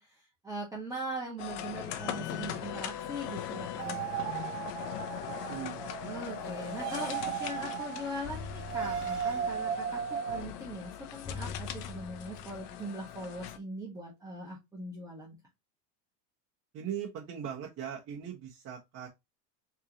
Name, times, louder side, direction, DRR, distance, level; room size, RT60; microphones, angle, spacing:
voice 1, 0.0-4.1 6.0-15.4, right 1 dB, 5° right, 1.6 m, -41 dB
sound 1, 1.4-13.6, left 10 dB, 80° left, 0.9 m, -40 dB
sound 2, 3.8-10.4, right 9 dB, 80° right, 0.9 m, -36 dB
voice 2, 5.5-5.9 16.7-19.1, right 9 dB, 35° right, 1.4 m, -39 dB
sound 3, 8.2-9.7 11.2-12.7, left 4 dB, 20° left, 0.6 m, -43 dB
4.6 x 3.7 x 3.0 m
supercardioid pair, 135°, 46 cm